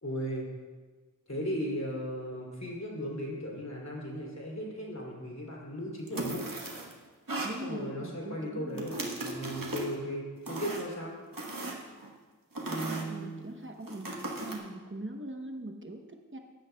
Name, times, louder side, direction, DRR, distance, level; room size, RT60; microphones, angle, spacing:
voice 1, 0.0-0.5 1.3-6.4 7.6-11.1 12.7-13.5, equal, 50° left, -3 dB, 2.8 m, -36 dB
sound 1, 6.1-6.9 7.3-7.6 8.7-9.9 10.5-10.9 11.3-12.1 12.6-13.1 13.9-14.6, right 2 dB, 85° right, 1.3 m, -37 dB
voice 2, 7.4-8.9 12.8-16.4, right 1 dB, 35° right, 4 dB, 0.9 m, -42 dB
14.5 x 10.5 x 2.3 m, 1.4 s
wide cardioid pair, 45°, 33 cm